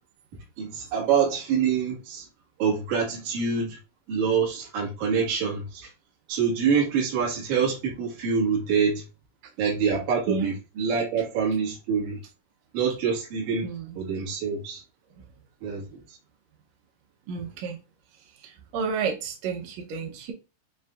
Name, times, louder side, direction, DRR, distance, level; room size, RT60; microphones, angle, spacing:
voice 1, 0.6-2.3 2.6-3.8 4.1-5.9 6.3-9.0 9.6-12.2 12.7-13.7 14.0-14.8 15.6-16.2, right 6 dB, 65° right, 2.9 m, -26 dB
voice 2, 13.6-14.0 15.2-15.3 17.3-17.8 18.4-20.3, right 5 dB, 85° right, 1.5 m, -31 dB
7.2 x 2.6 x 2.3 m
omnidirectional pair, 4.0 m